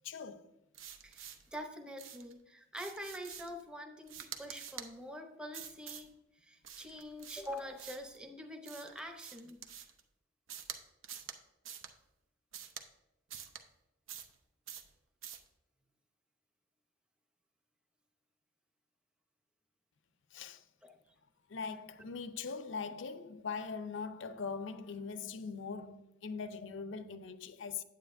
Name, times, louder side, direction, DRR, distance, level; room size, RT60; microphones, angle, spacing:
voice 1, 0.0-0.5 20.3-20.6 21.5-27.8, left 5 dB, 70° left, 0.5 m, -41 dB
sound 1, 0.7-1.6 2.0-2.3 2.7-3.6 4.1-4.9 5.5-6.1 6.6-8.2 8.6-10.0 10.5-10.8 11.0-11.4 11.6-11.9 12.5-12.9 13.3-13.6 14.1-14.4 14.7-14.9 15.2-15.5, right 9 dB, 80° right, 0.7 m, -47 dB
voice 2, 1.0-6.1 6.4-9.6 20.8-21.0, equal, 5° right, 0.7 m, -45 dB
9.2 x 8.7 x 2.6 m
head